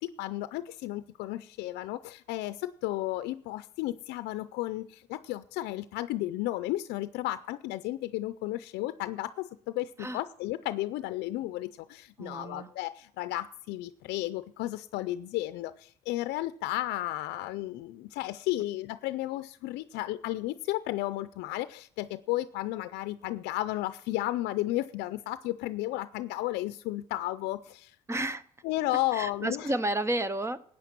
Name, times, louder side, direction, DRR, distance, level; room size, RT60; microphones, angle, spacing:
voice 1, 0.0-27.9 28.6-29.7, left 16 dB, 85° left, 13 dB, 0.5 m, -33 dB
voice 2, 12.2-12.7 28.1-28.4 29.1-30.6, right 1 dB, 15° right, 16 dB, 0.7 m, -31 dB
13.5 x 8.7 x 5.9 m, 0.62 s
cardioid pair, 110°, 17 cm